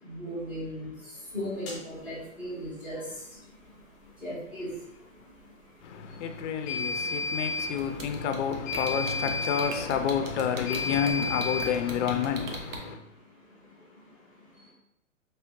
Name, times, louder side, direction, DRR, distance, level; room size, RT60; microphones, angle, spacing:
voice 1, 0.0-5.5 5.8-7.2 12.9-14.7, equal, 5° right, 1.3 m, -40 dB
sound 1, 1.7-1.8 6.7-7.8 8.7-9.8 10.7-11.8, left 3 dB, 15° left, 0.7 m, -32 dB
voice 2, 5.8-13.0, left 7 dB, 60° left, 0.6 m, -29 dB
sound 2, 7.8-12.8, right 3 dB, 75° right, 0.9 m, -39 dB
3.3 x 3.3 x 2.9 m
hypercardioid pair, 140°, 40 cm